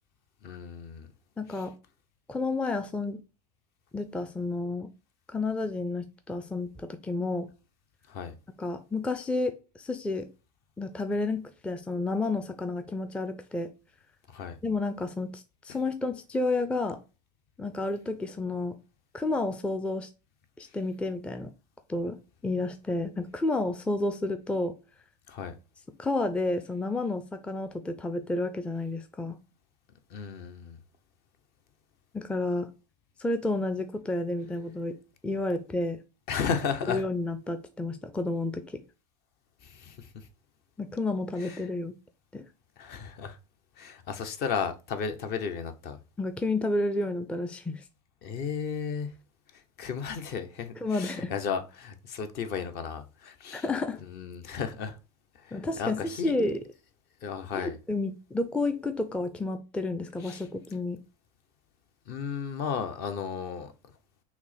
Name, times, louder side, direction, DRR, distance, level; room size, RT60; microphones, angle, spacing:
voice 1, 0.4-1.1 1.5-1.6 8.1-8.3 14.3-14.6 25.3-25.5 30.1-30.8 36.3-37.0 39.6-40.3 41.4-41.6 42.8-43.4 43.8-46.0 48.2-49.1 49.5-53.6 54.0-55.0 55.4-56.4 57.2-57.8 60.2-60.5 62.1-63.7, left 6 dB, 50° left, 0.8 m, -34 dB
voice 2, 1.4-1.7 2.3-3.2 3.9-4.9 5.3-7.5 8.6-10.3 10.8-13.7 14.6-17.0 17.6-18.8 19.1-20.1 20.6-21.5 21.9-22.2 22.4-24.7 26.0-29.4 32.1-32.7 33.2-35.0 35.2-36.0 36.9-38.8 40.8-42.0 42.3-42.4 46.2-47.8 50.8-51.3 53.5-54.0 55.5-56.6 57.5-61.0, left 2 dB, 5° left, 0.4 m, -30 dB
5.8 x 2.1 x 4.0 m
hypercardioid pair, 105°, 21 cm